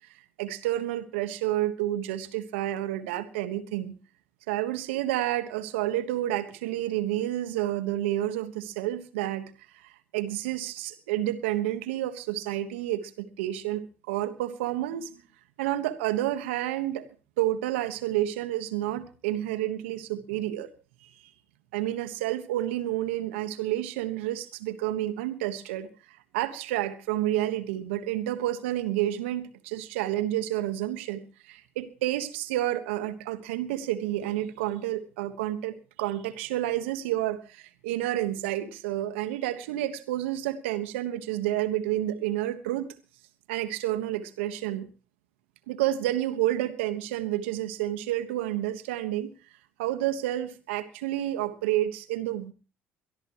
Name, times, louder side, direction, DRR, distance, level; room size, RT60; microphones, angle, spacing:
voice 1, 0.4-3.9 4.5-9.4 9.8-15.1 15.6-17.1 17.4-20.7 21.0-21.1 21.7-42.9 43.5-44.9 45.7-49.3 49.8-52.5, right 14 dB, 80° right, 10 dB, 1.2 m, -30 dB
22.5 x 13.0 x 3.0 m, 0.35 s
hypercardioid pair, 60°, 6 cm